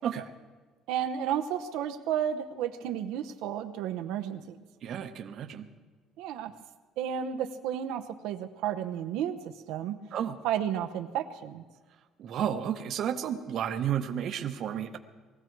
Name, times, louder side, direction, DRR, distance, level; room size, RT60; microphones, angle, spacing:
voice 1, 0.9-4.6 6.2-6.5 7.0-9.4 9.7-10.0 10.4-11.6, right 9 dB, 85° right, 6 dB, 0.9 m, -32 dB
voice 2, 4.8-5.7 10.1-10.4 12.2-15.0, right 9 dB, 45° right, 7 dB, 0.9 m, -32 dB
20.0 x 15.5 x 4.6 m, 1.4 s
cardioid pair, 165°, 0 cm